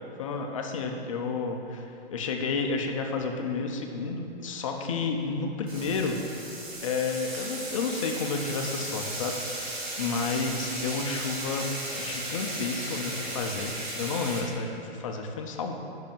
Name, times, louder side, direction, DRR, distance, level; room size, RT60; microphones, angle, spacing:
voice 1, 0.2-6.2 6.8-9.4 10.0-11.7 12.0-15.8, left 4 dB, 30° left, 3 dB, 0.5 m, -31 dB
sound 1, 5.7-14.4, right 1 dB, 50° right, 1.6 m, -36 dB
5.5 x 5.1 x 5.2 m, 2.6 s
hypercardioid pair, 165°, 32 cm